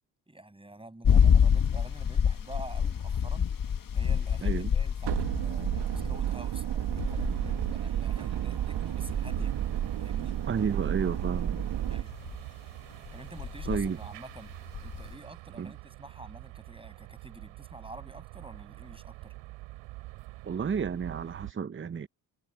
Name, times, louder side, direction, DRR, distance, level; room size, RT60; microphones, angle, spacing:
voice 1, 0.3-3.5 3.9-9.6 10.0-10.4 11.9-12.2 13.1-14.5 14.8-19.3, right 2 dB, 10° right, 6.7 m, -48 dB
sound 1, 1.0-6.3 6.8-7.9 9.1-10.2 11.1-12.4 13.1-13.9 14.4-15.1, left 7 dB, 45° left, 1.8 m, -27 dB
voice 2, 4.4-4.7 10.5-11.6 13.7-14.0 15.6-15.7 20.4-22.1, right 6 dB, 25° right, 0.8 m, -31 dB
sound 2, 5.0-12.0, right 11 dB, 65° right, 1.7 m, -31 dB
sound 3, 7.0-21.5, right 20 dB, 90° right, 6.1 m, -46 dB
supercardioid pair, 60°, 44 cm